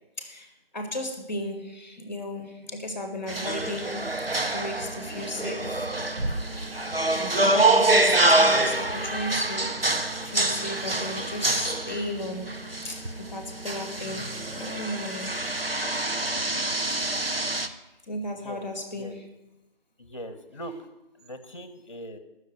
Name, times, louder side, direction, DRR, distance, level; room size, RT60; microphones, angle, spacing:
voice 1, 0.2-4.0 4.5-5.9 7.2-9.8 10.2-12.6 12.8-15.4 18.1-19.3, left 1 dB, 15° left, 5 dB, 1.8 m, -35 dB
sound 1, 3.3-17.7, right 2 dB, 75° right, 1.4 m, -26 dB
voice 2, 20.0-20.7 21.2-22.2, equal, 35° left, 10 dB, 1.4 m, -40 dB
16.5 x 6.6 x 9.5 m, 1.0 s
figure-of-eight pair, 165°, 29 cm